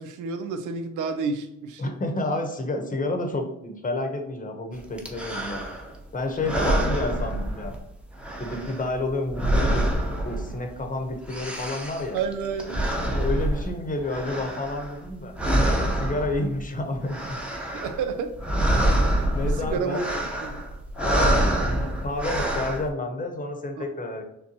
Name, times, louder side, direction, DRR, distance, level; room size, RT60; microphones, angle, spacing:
voice 1, 0.0-1.9 6.6-6.7 12.1-12.8 17.7-18.3 19.0-20.0 20.4-20.6, right 5 dB, 80° right, 8 dB, 0.6 m, -30 dB
voice 2, 1.8-5.7 6.1-7.7 8.4-9.8 10.2-12.2 13.1-15.3 16.0-17.4 19.3-20.1 21.0-24.2, left 2 dB, 25° left, 4 dB, 0.9 m, -30 dB
sound 1, 5.0-6.0 6.4-7.9 8.2-10.8 11.1-15.1 15.3-16.6 16.9-18.0 18.3-22.9, right 1 dB, 5° right, 0.8 m, -26 dB
6.5 x 2.3 x 2.8 m, 0.85 s
cardioid pair, 90°, 30 cm